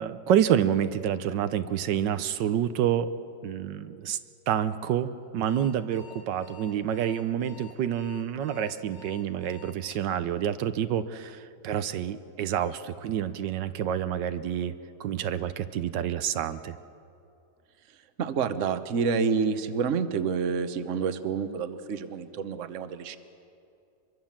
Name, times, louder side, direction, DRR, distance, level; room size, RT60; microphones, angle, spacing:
voice 1, 0.0-3.1 3.4-4.2 4.5-14.7 15.0-16.8, right 9 dB, 80° right, 12 dB, 1.4 m, -28 dB
Alarm, 5.2-10.1, left 7 dB, 70° left, 3.5 m, -50 dB
voice 2, 18.2-23.2, right 6 dB, 50° right, 11 dB, 1.2 m, -28 dB
24.5 x 23.0 x 7.4 m, 2.6 s
omnidirectional pair, 1.9 m